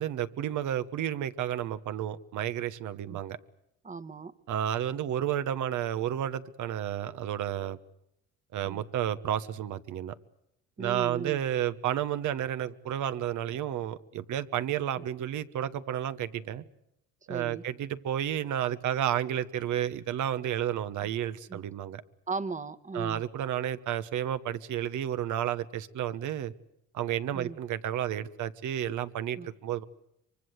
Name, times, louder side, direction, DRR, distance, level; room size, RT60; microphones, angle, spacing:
voice 1, 0.0-3.4 4.5-7.8 8.5-10.1 10.8-16.6 17.3-22.0 22.9-26.5 26.9-29.8, right 10 dB, 70° right, 1.2 m, -31 dB
voice 2, 3.8-4.3 8.6-8.8 10.8-11.4 15.0-15.1 17.3-17.6 21.5-21.6 22.3-23.2 27.3-27.6 29.4-29.5, right 4 dB, 25° right, 1.3 m, -37 dB
24.5 x 24.0 x 8.1 m
supercardioid pair, 65°, 31 cm